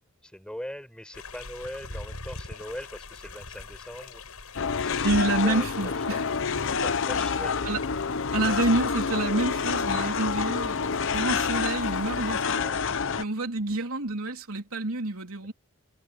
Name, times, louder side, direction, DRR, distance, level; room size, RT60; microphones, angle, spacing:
voice 1, 0.2-4.2 4.8-5.1 5.4-6.2 6.8-7.8 12.6-12.8, equal, 5° left, 6.4 m, -41 dB
sound 1, 1.1-12.4, left 3 dB, 80° left, 6.3 m, -43 dB
sound 2, 4.6-13.2, left 5 dB, 60° left, 0.8 m, -28 dB
voice 2, 5.0-6.3 7.6-7.8 8.3-10.9 11.1-12.6 13.2-15.5, right 2 dB, 70° right, 3.7 m, -28 dB
head